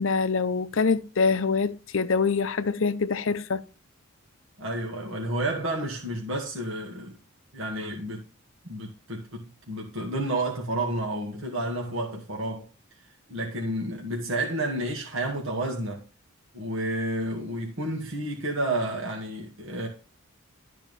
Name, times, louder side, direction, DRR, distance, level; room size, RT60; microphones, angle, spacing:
voice 1, 0.0-3.6, left 4 dB, 65° left, 0.6 m, -25 dB
voice 2, 4.6-7.2 7.5-8.2 8.6-12.7 13.3-16.0 16.5-19.9, right 1 dB, 70° right, 2.1 m, -30 dB
13.0 x 4.6 x 5.5 m
head